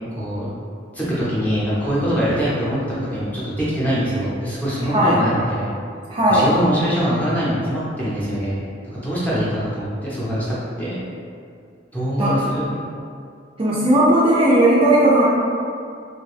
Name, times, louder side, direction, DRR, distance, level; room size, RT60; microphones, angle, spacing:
voice 1, 0.1-0.5 0.9-5.7 6.3-8.6 9.0-11.0 11.9-12.7, equal, 10° left, -9 dB, 0.6 m, -23 dB
voice 2, 6.1-6.5 12.2-12.4 13.6-15.2, right 1 dB, 30° right, -6 dB, 0.3 m, -16 dB
2.6 x 2.2 x 3.2 m, 2.3 s
head